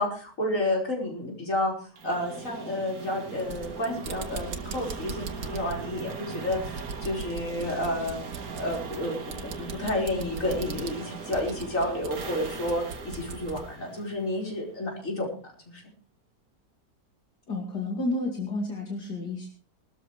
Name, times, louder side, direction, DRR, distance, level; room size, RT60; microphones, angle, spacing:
voice 1, 0.0-1.7 2.0-8.2 8.5-15.3 15.7-15.8, left 1 dB, 50° left, -1 dB, 5.4 m, -30 dB
sound 1, 2.0-14.8, right 6 dB, 60° right, 1.9 m, -40 dB
sound 2, 3.3-13.7, right 4 dB, 75° right, 1.9 m, -40 dB
voice 2, 17.5-19.5, left 2 dB, 75° left, 0 dB, 2.9 m, -31 dB
21.0 x 13.0 x 3.3 m, 0.37 s
omnidirectional pair, 1.8 m